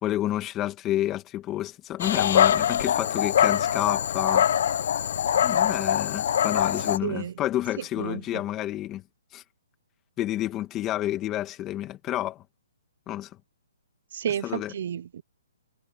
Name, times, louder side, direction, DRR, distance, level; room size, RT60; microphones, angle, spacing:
voice 1, 0.0-4.5 5.4-9.0 9.3-9.4 10.2-12.4 13.1-13.3 14.4-14.7, left 13 dB, 15° left, 2.3 m, -29 dB
Dog, 2.0-7.0, left 9 dB, 55° left, 1.3 m, -23 dB
voice 2, 7.0-7.3 8.0-8.2 14.1-15.2, right 9 dB, 50° right, 0.8 m, -31 dB
hypercardioid pair, 160°, 0 cm